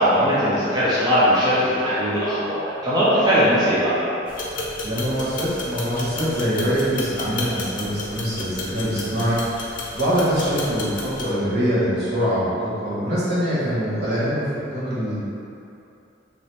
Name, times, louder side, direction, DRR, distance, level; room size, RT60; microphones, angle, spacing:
voice 1, 0.0-4.0, equal, 20° right, -11 dB, 0.6 m, -19 dB
sound 1, 4.3-11.3, left 2 dB, 45° left, 0.7 m, -32 dB
voice 2, 4.8-9.4 9.9-15.4, equal, 55° right, -11 dB, 1.4 m, -24 dB
3.2 x 3.0 x 4.3 m, 2.8 s
head